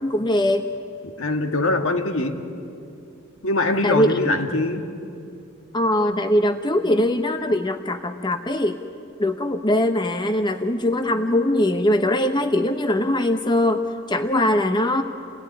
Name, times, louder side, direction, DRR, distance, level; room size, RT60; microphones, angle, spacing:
voice 1, 0.0-0.7 3.8-4.3 5.7-8.8 9.2-15.0, left 1 dB, 20° left, 7 dB, 0.8 m, -21 dB
voice 2, 1.0-2.4 3.4-4.8, left 2 dB, 65° left, 5 dB, 2.0 m, -23 dB
29.0 x 17.5 x 9.8 m, 2.6 s
head